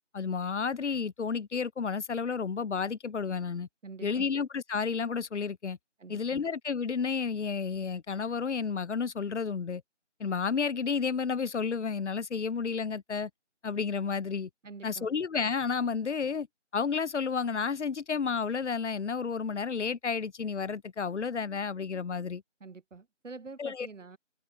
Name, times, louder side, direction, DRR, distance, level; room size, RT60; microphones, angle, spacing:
voice 1, 0.1-3.7 4.0-5.8 6.1-9.8 10.2-13.3 13.6-14.5 14.8-16.5 16.7-22.4 23.6-23.9, left 5 dB, 70° left, 0.5 m, -31 dB
voice 2, 3.8-4.3 6.0-6.4 14.6-15.1 22.6-24.2, right 4 dB, 85° right, 0.8 m, -46 dB
figure-of-eight pair, 175°, 36 cm